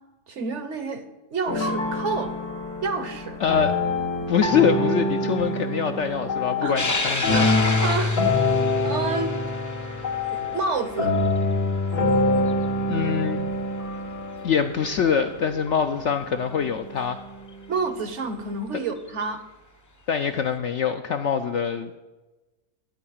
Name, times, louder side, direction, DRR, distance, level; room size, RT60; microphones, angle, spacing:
voice 1, 0.3-2.4 2.8-3.4 6.6-6.8 7.3-7.4 7.8-8.2 8.8-9.3 10.3-11.1 17.7-19.4, right 4 dB, 55° right, 9 dB, 1.0 m, -29 dB
sound 1, 1.5-17.6, left 2 dB, 85° left, 2.7 m, -26 dB
voice 2, 3.4-3.7 4.3-7.5 12.9-13.4 14.4-17.2 20.1-21.9, left 7 dB, 65° left, 7 dB, 0.7 m, -24 dB
sound 2, 6.8-13.4 13.9-14.0 15.2-15.3 17.5-17.6 19.0-19.2, left 2 dB, 25° left, 0.4 m, -31 dB
13.0 x 4.7 x 8.6 m, 1.1 s
omnidirectional pair, 1.6 m